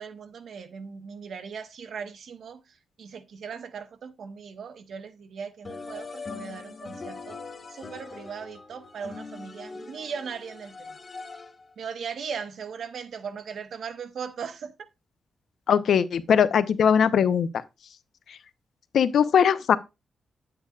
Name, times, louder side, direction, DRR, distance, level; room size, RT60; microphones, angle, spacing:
voice 1, 0.0-2.6 3.0-7.4 7.7-10.9 11.8-14.9, right 6 dB, 70° right, 0.9 m, -38 dB
sound 1, 5.6-11.7, left 4 dB, 35° left, 1.3 m, -41 dB
voice 2, 15.7-17.5 18.3-18.4 18.9-19.8, left 7 dB, 70° left, 0.7 m, -20 dB
9.4 x 8.6 x 2.4 m
wide cardioid pair, 140°, 0 cm